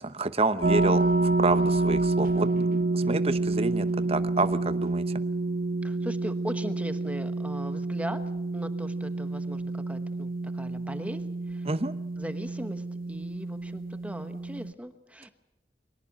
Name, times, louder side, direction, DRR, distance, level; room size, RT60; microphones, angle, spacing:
voice 1, 0.0-1.0 1.4-2.5 2.9-5.0 11.7-11.9, right 3 dB, 35° right, 12 dB, 0.9 m, -28 dB
sound 1, 0.6-14.7, right 2 dB, 50° right, 1.1 m, -28 dB
voice 2, 0.7-1.2 1.5-2.6 5.8-8.2 8.5-11.2 11.5-11.7 12.2-15.3, equal, 10° right, 9 dB, 1.2 m, -39 dB
23.0 x 18.5 x 9.1 m, 0.95 s
head